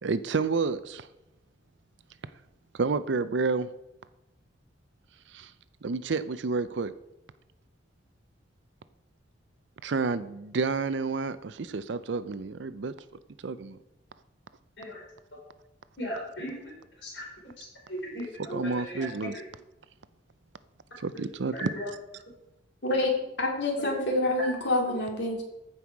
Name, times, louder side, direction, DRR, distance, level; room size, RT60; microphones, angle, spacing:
voice 1, 0.0-1.1 2.7-3.7 5.3-5.5 5.8-6.9 9.8-12.9 13.4-13.8 18.5-19.4 21.0-21.7, right 4 dB, 75° right, 14 dB, 0.6 m, -30 dB
voice 2, 16.0-16.7 17.0-17.2 17.6-19.4 21.5-21.9 24.4-24.5, equal, 80° left, -1 dB, 4.3 m, -37 dB
voice 3, 23.4-25.4, left 1 dB, 65° left, 0 dB, 2.5 m, -27 dB
14.5 x 5.6 x 4.6 m, 0.92 s
head